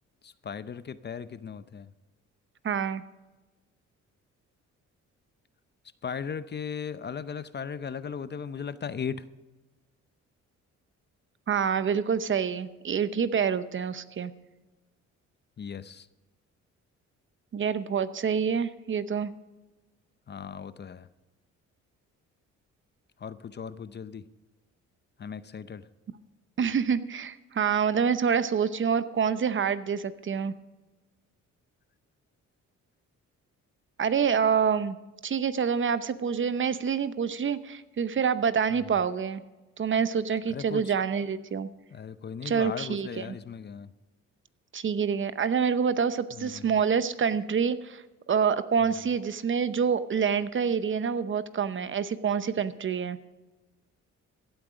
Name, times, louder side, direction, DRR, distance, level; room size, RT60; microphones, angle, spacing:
voice 1, 0.2-1.9 6.0-9.3 15.6-16.1 20.3-21.1 23.2-24.2 25.2-25.8 38.7-39.0 40.5-40.9 41.9-43.9 46.3-46.8 48.8-49.0, left 6 dB, 35° left, 14 dB, 0.6 m, -37 dB
voice 2, 2.6-3.0 11.5-14.3 17.5-19.3 26.6-30.5 34.0-35.0 35.2-39.4 39.8-41.7 42.4-43.3 44.7-53.2, right 6 dB, 40° right, 13 dB, 0.8 m, -27 dB
16.0 x 8.9 x 5.0 m, 1.2 s
cardioid pair, 90°, 30 cm